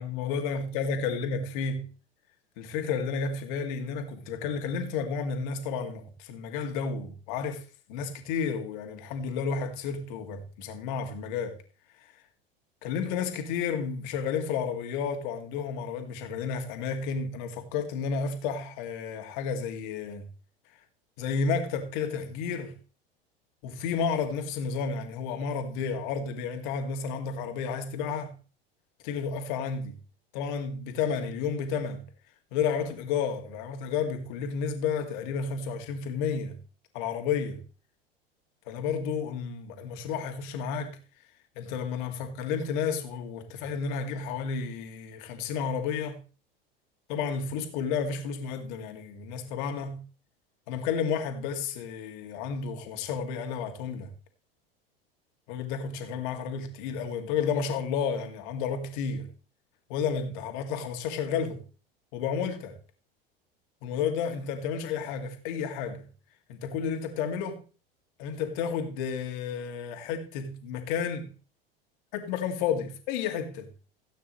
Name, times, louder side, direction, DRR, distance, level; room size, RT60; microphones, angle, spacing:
voice 1, 0.0-1.9 2.6-11.6 12.0-12.1 12.8-20.3 21.2-22.8 23.6-28.4 29.0-30.0 30.3-32.0 32.5-36.6 36.9-37.6 38.7-41.0 41.6-46.2 47.1-50.0 50.7-54.1 55.5-59.3 59.9-61.6 62.1-62.8 63.8-66.0 66.5-67.6 68.2-71.3 72.1-73.7, left 6 dB, 55° left, 2.5 m, -31 dB
17.0 x 9.3 x 3.2 m
figure-of-eight pair, 80°, 29 cm